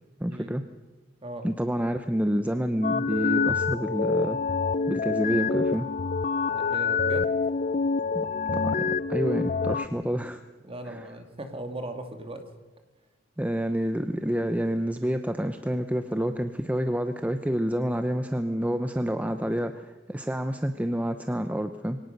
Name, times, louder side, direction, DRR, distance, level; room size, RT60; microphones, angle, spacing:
voice 1, 0.2-0.6 1.4-4.6 4.9-5.9 8.1-8.3 8.5-10.4 10.8-11.1 13.4-22.0, equal, 10° right, 8 dB, 0.8 m, -28 dB
sound 1, 2.8-9.9, left 4 dB, 40° left, 0.6 m, -26 dB
voice 2, 6.5-7.3 10.6-12.4, right 1 dB, 30° right, 6 dB, 2.4 m, -38 dB
23.0 x 18.0 x 6.7 m, 1.3 s
head